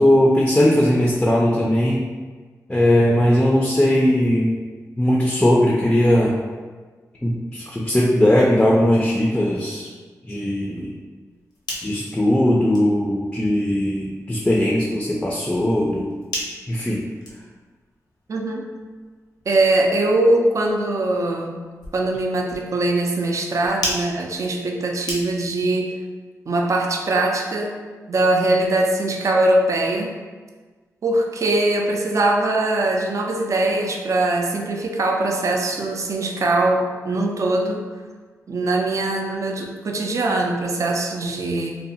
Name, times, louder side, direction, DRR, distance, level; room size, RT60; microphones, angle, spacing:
voice 1, 0.0-2.1 2.7-4.5 5.0-6.4 7.2-9.9 10.2-10.9 11.8-16.1 16.7-17.1, left 1 dB, 15° left, -3 dB, 0.4 m, -19 dB
sound 1, 11.3-25.7, left 1 dB, 85° left, 0.6 m, -37 dB
voice 2, 18.3-18.6 19.5-21.6 21.9-25.9 26.5-27.7 28.1-30.1 31.0-37.8 38.5-41.7, right 2 dB, 50° right, 1 dB, 0.4 m, -21 dB
2.6 x 2.1 x 2.6 m, 1.4 s
cardioid pair, 55°, 7 cm